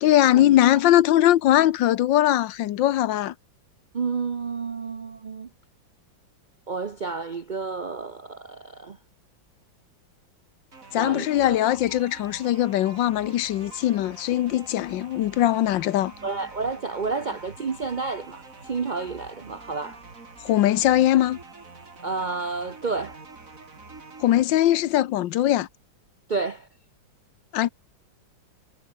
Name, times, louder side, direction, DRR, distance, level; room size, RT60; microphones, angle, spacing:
voice 1, 0.0-3.3 10.9-16.1 20.4-21.4 24.2-25.7 27.5-27.7, left 13 dB, 80° left, 1.5 m, -21 dB
voice 2, 3.9-5.5 6.7-9.0 11.0-11.6 16.2-20.0 22.0-23.2 26.3-26.7, right 4 dB, 75° right, 0.4 m, -30 dB
sound 1, 10.7-24.4, right 3 dB, 45° right, 3.4 m, -46 dB
omnidirectional pair, 2.1 m